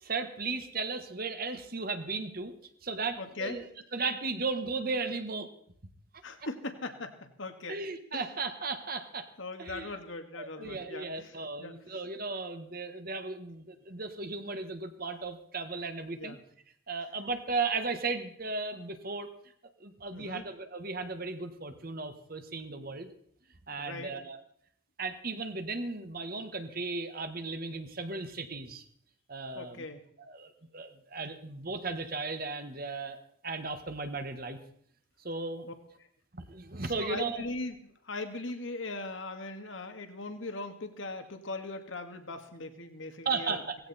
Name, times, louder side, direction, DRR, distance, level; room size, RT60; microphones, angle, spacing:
voice 1, 0.0-2.5 2.8-3.7 3.9-5.5 7.7-9.3 9.6-10.0 10.3-16.4 16.9-19.3 19.8-23.1 23.7-24.4 25.0-28.8 29.3-29.8 30.2-33.2 33.4-34.6 35.2-35.7 36.3-37.5 43.2-43.8, right 4 dB, 45° right, 8 dB, 1.5 m, -36 dB
voice 2, 3.2-3.6 6.2-7.8 8.1-8.2 9.4-11.3 11.6-11.7 16.2-16.4 20.1-20.5 23.8-24.1 29.6-30.0 36.9-37.8 38.1-43.6, left 2 dB, 70° left, 7 dB, 1.9 m, -39 dB
18.0 x 15.5 x 4.3 m, 0.64 s
head